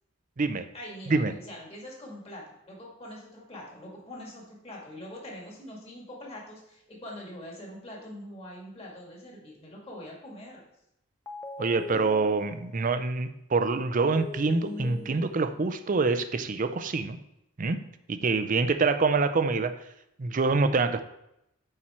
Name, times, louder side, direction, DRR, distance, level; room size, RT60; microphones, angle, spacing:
voice 1, 0.7-10.6, left 1 dB, 30° left, -3 dB, 2.1 m, -43 dB
sound 1, 11.3-13.0 14.0-15.7, left 3 dB, 15° left, 0.5 m, -40 dB
voice 2, 11.6-17.2 17.6-17.8 18.1-19.7 20.2-21.0, right 4 dB, 40° right, 10 dB, 0.5 m, -26 dB
8.5 x 4.4 x 4.4 m, 0.81 s
head